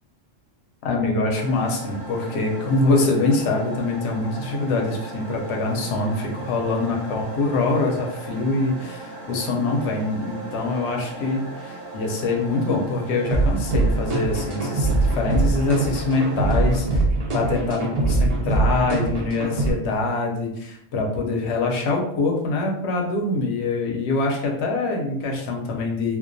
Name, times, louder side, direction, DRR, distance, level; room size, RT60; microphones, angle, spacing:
voice 1, 0.8-16.8 17.3-26.2, left 3 dB, 65° left, 1 dB, 0.8 m, -24 dB
sound 1, 1.3-16.7, right 2 dB, 30° right, 0.5 m, -38 dB
sound 2, 13.3-19.7, right 2 dB, 80° right, 0.3 m, -22 dB
2.3 x 2.2 x 2.5 m, 0.77 s
omnidirectional pair, 1.3 m